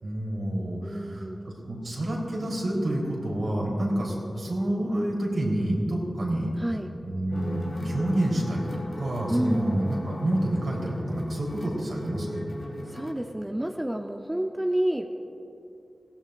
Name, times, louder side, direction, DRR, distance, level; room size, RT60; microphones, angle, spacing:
voice 1, 0.0-1.2 1.7-6.5 7.0-12.4, right 1 dB, 75° right, -3 dB, 3.7 m, -28 dB
voice 2, 0.8-1.4 6.6-6.9 9.3-9.8 12.8-15.2, right 1 dB, 15° right, 4 dB, 0.7 m, -29 dB
sound 1, 7.3-13.1, left 1 dB, 65° left, 2.1 m, -37 dB
20.0 x 16.5 x 2.6 m, 2.7 s
wide cardioid pair, 60°, 0 cm